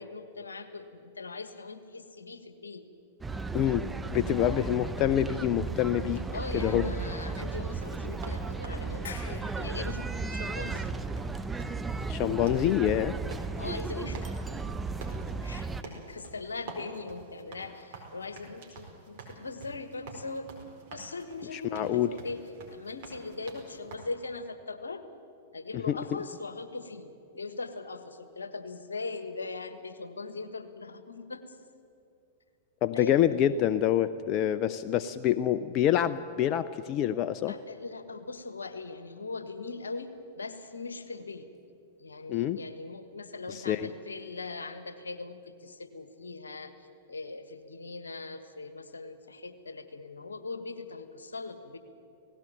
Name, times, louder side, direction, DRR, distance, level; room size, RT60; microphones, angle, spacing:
voice 1, 0.0-2.8 6.3-10.9 13.6-14.2 15.4-20.5 20.9-25.0 25.5-31.4 32.9-33.4 37.5-41.5 42.0-51.8, left 3 dB, 85° left, 10 dB, 1.4 m, -40 dB
sound 1, 3.2-15.8, right 4 dB, 10° right, 0.8 m, -35 dB
voice 2, 3.5-6.2 6.5-6.8 12.1-13.1 21.5-22.1 25.9-26.0 32.8-37.5 42.3-42.6 43.5-43.9, left 11 dB, 40° left, 13 dB, 0.6 m, -26 dB
sound 2, 4.5-6.4 7.2-7.3 8.0-8.6 8.9-10.5, left 6 dB, 70° left, 4.4 m, -50 dB
sound 3, 5.7-24.0, right 4 dB, 55° right, 4.5 m, -49 dB
18.0 x 16.5 x 9.0 m, 2.6 s
hypercardioid pair, 105°, 0 cm